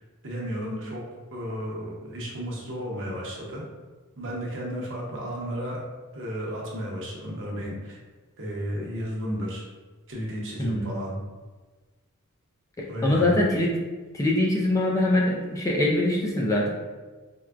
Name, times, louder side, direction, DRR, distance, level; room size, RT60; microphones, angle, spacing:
voice 1, 0.2-1.0 1.3-3.6 4.2-5.8 6.1-8.0 8.4-9.7 10.1-11.2 12.9-13.4, equal, 60° right, -2 dB, 0.8 m, -33 dB
voice 2, 10.6-10.9 13.0-13.7 14.1-16.7, left 1 dB, 15° left, -2 dB, 0.3 m, -23 dB
4.4 x 2.2 x 2.4 m, 1.3 s
head